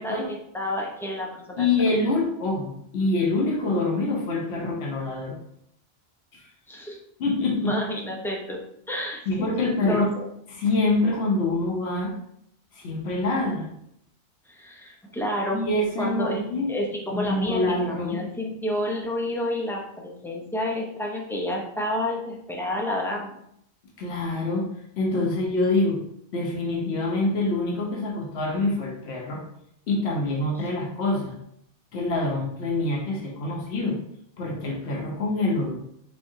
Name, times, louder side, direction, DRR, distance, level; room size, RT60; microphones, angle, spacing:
voice 1, 0.0-1.7 6.7-7.0 7.6-8.6 8.9-10.2 14.5-15.7 16.0-16.4 16.7-23.4, left 1 dB, 5° left, -2 dB, 0.4 m, -30 dB
voice 2, 1.6-5.4 6.3-6.5 7.2-7.7 9.3-10.1 10.5-12.1 12.7-13.7 15.5-16.7 17.1-18.2 24.0-24.7 25.0-26.0 26.3-29.4 29.9-31.3 31.9-34.0 34.4-35.8, left 2 dB, 80° left, -1 dB, 1.0 m, -25 dB
3.5 x 3.3 x 2.7 m, 0.72 s
omnidirectional pair, 1.1 m